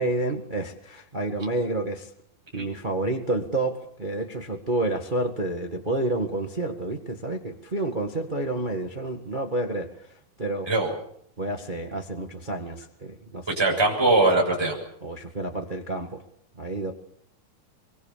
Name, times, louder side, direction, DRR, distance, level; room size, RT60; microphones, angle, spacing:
voice 1, 0.0-2.1 2.5-9.9 10.4-10.7 11.4-13.8 15.0-16.2 16.6-16.9, right 2 dB, 60° right, 4 dB, 0.5 m, -29 dB
voice 2, 13.6-14.7, right 2 dB, 5° right, -1 dB, 6.9 m, -21 dB
24.0 x 23.5 x 7.4 m, 0.69 s
omnidirectional pair, 4.3 m